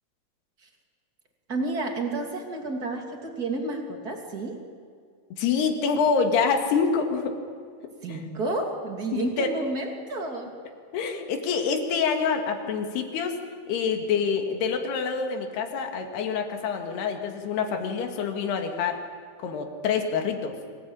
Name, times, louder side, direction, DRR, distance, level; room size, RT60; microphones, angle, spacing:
voice 1, 1.5-4.6 8.0-10.5, right 2 dB, 25° right, 2 dB, 2.7 m, -31 dB
voice 2, 5.3-7.4 8.1-8.2 9.1-9.5 10.9-13.4 13.7-19.0 19.4-20.6, left 5 dB, 80° left, 5 dB, 4.0 m, -26 dB
25.0 x 17.5 x 8.9 m, 2.1 s
omnidirectional pair, 4.6 m